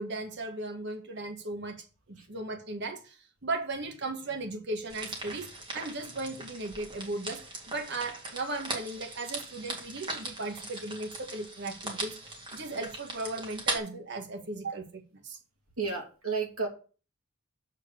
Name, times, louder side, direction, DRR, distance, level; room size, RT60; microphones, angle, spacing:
voice 1, 0.0-15.4, right 2 dB, 55° right, 4 dB, 1.7 m, -37 dB
sound 1, 4.9-13.8, right 2 dB, 20° right, 2.0 m, -39 dB
voice 2, 15.8-16.7, right 4 dB, 85° right, 1 dB, 2.8 m, -32 dB
6.9 x 4.6 x 6.7 m, 0.37 s
head